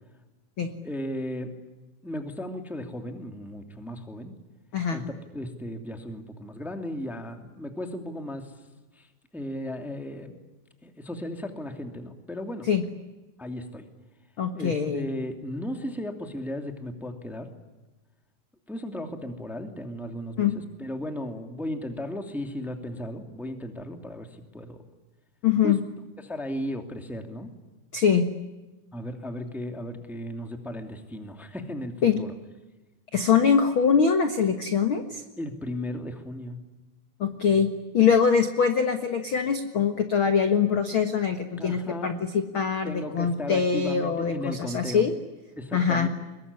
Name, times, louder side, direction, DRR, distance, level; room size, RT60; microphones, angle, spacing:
voice 1, 0.8-1.5 2.0-4.3 4.9-5.0 5.3-8.5 9.0-9.1 9.3-10.4 10.8-12.7 13.4-13.8 14.5-17.5 18.7-20.5 20.8-24.8 25.6-25.7 26.2-27.5 28.9-32.3 35.4-36.6 41.6-42.1 42.8-45.0 45.6-46.1, left 1 dB, ahead, 5 dB, 2.0 m, -35 dB
voice 2, 4.7-5.0 12.7-12.8 14.4-15.1 20.4-20.6 25.4-25.8 27.9-28.3 32.0-32.2 33.1-35.2 37.2-45.1 45.7-46.1, left 6 dB, 50° left, 7 dB, 1.7 m, -23 dB
25.5 x 22.5 x 9.9 m, 1.1 s
omnidirectional pair, 4.1 m